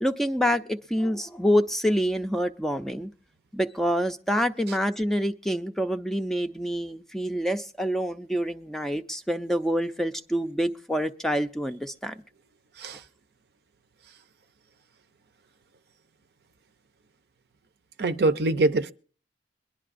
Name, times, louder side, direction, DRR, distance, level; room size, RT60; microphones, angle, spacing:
voice 1, 0.0-3.1 3.5-12.1, equal, ahead, 0.5 m, -27 dB
voice 2, 18.0-18.9, right 2 dB, 65° right, 0.6 m, -24 dB
23.0 x 11.0 x 2.5 m
head